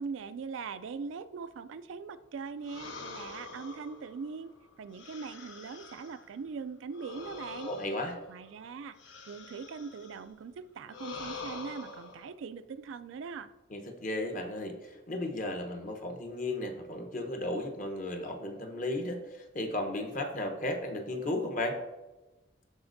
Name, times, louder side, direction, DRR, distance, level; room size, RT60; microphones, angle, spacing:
voice 1, 0.0-4.5 4.8-7.7 8.3-9.0 9.3-13.5, right 5 dB, 85° right, 13 dB, 0.4 m, -41 dB
sound 1, 2.6-6.3 6.9-10.3 10.9-12.3, left 3 dB, 80° left, 1.0 m, -45 dB
voice 2, 7.6-8.2 13.7-21.8, left 1 dB, 45° left, 4 dB, 1.0 m, -35 dB
12.5 x 4.3 x 2.6 m, 1.1 s
head